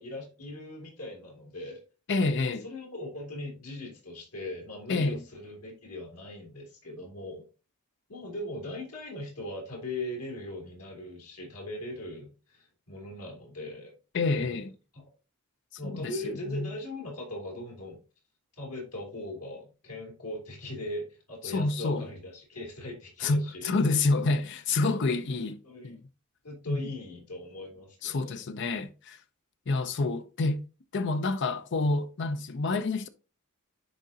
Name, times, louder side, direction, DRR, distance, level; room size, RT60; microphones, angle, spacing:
voice 1, 0.0-1.8 2.4-7.4 8.1-13.9 14.3-14.7 14.9-15.0 15.8-18.0 18.6-23.7 24.8-25.0 25.4-25.9 26.4-28.4, left 1 dB, 85° left, 2.9 m, -40 dB
voice 2, 2.1-2.7 4.9-5.2 14.1-14.7 15.8-16.2 16.5-16.7 21.4-22.1 23.2-25.6 25.8-26.0 26.7-26.8 28.0-29.2 29.7-30.6 30.9-33.1, left 3 dB, 55° left, 0.6 m, -28 dB
10.5 x 3.8 x 2.8 m
head